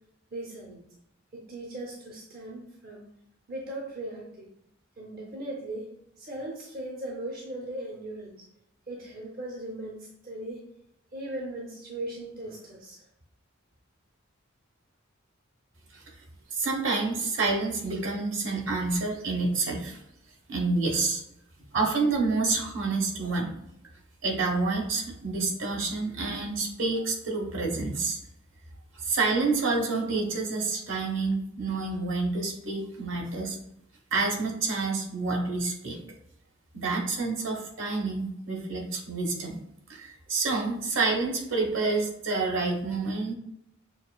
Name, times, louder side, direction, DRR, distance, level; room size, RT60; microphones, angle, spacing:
voice 1, 0.3-0.8 1.3-3.1 3.5-4.5 5.0-5.9 6.2-8.5 8.9-10.6 11.1-13.1 21.6-21.7, right 1 dB, 50° right, -1 dB, 0.6 m, -38 dB
voice 2, 16.5-20.0 20.5-21.2 21.7-23.5 24.2-28.2 28.9-33.6 34.1-36.0 36.7-39.6 39.9-43.3, right 3 dB, 75° right, 0 dB, 1.0 m, -28 dB
6.3 x 2.4 x 2.2 m, 0.79 s
head